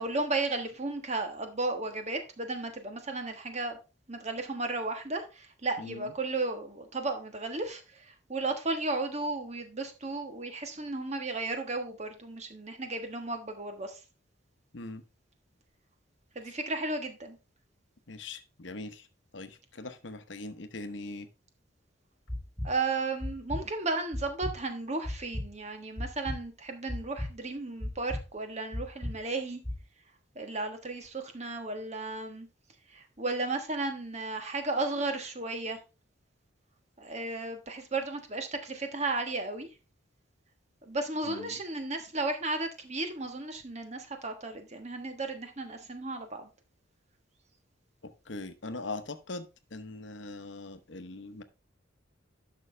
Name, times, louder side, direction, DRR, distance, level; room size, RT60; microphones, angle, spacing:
voice 1, 0.0-3.8 4.1-14.0 16.3-17.4 22.6-29.6 30.3-32.5 32.9-35.8 37.0-39.7 40.8-46.5, right 3 dB, 35° right, 1.4 m, -34 dB
voice 2, 5.8-6.1 14.7-15.0 18.1-19.1 19.3-21.3 41.3-41.5 48.0-51.4, left 2 dB, 65° left, 0.9 m, -41 dB
sound 1, 22.3-22.7 23.2-23.6 24.1-24.5 25.0-25.5 26.0-26.4 26.9-27.3 27.8-28.2 28.7-29.1 29.6-29.8, left 1 dB, 5° left, 1.5 m, -34 dB
11.0 x 6.1 x 3.3 m
head